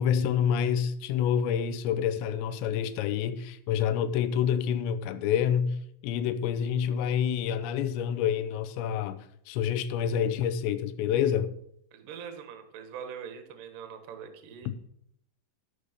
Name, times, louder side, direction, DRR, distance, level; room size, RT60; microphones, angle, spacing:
voice 1, 0.0-11.5, left 8 dB, 80° left, 2.6 m, -28 dB
voice 2, 11.9-14.9, right 7 dB, 75° right, 1.9 m, -43 dB
14.0 x 5.0 x 6.6 m
omnidirectional pair, 5.9 m